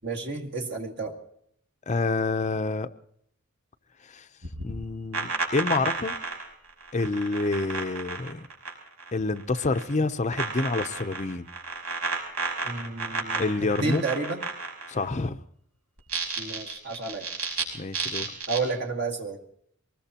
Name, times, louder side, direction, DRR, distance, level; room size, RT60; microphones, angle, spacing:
voice 1, 0.0-1.2 12.6-13.4 13.8-14.4 16.4-17.3 18.5-19.4, right 3 dB, 50° right, 1 dB, 1.9 m, -31 dB
voice 2, 1.9-2.9 4.0-4.3 4.6-6.2 6.9-8.5 9.1-11.5 13.4-14.0 14.9-15.4 17.7-18.3, left 3 dB, 30° left, 9 dB, 0.6 m, -28 dB
sound 1, 4.4-9.1 9.4-9.9 10.3-15.1 16.0-17.6 17.9-18.6, right 4 dB, 85° right, 5.9 m, -32 dB
24.0 x 21.0 x 2.9 m, 0.67 s
head